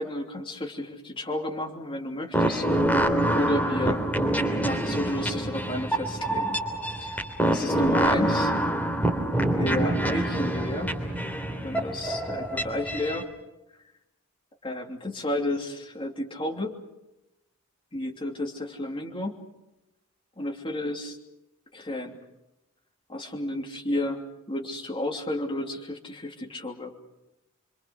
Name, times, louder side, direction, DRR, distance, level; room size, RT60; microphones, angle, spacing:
voice 1, 0.0-2.7 3.3-4.0 4.6-6.6 7.0-8.5 9.4-11.0 11.3-13.3 14.6-16.8 17.9-19.4 20.4-21.2 21.7-22.2 23.1-24.2 24.5-26.9, left 1 dB, 25° left, 1 dB, 3.0 m, -32 dB
sound 1, 2.3-13.2, right 1 dB, 5° left, 3.2 m, -26 dB
27.5 x 25.0 x 6.5 m, 0.94 s
head